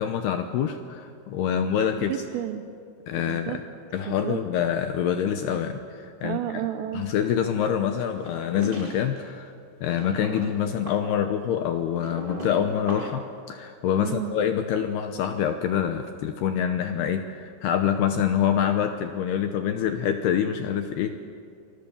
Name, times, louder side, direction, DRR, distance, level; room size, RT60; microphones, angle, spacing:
voice 1, 0.0-2.2 3.1-3.6 3.9-6.4 6.9-9.5 9.8-21.2, left 9 dB, 75° left, 7 dB, 2.4 m, -26 dB
voice 2, 2.0-2.6 3.3-3.6 4.0-4.4 6.2-7.1 14.0-14.4, right 12 dB, 80° right, 7 dB, 3.5 m, -31 dB
sound 1, 8.2-9.2 9.9-13.3, right 1 dB, 45° right, 0.6 m, -38 dB
29.5 x 25.0 x 7.1 m, 2.3 s
omnidirectional pair, 5.9 m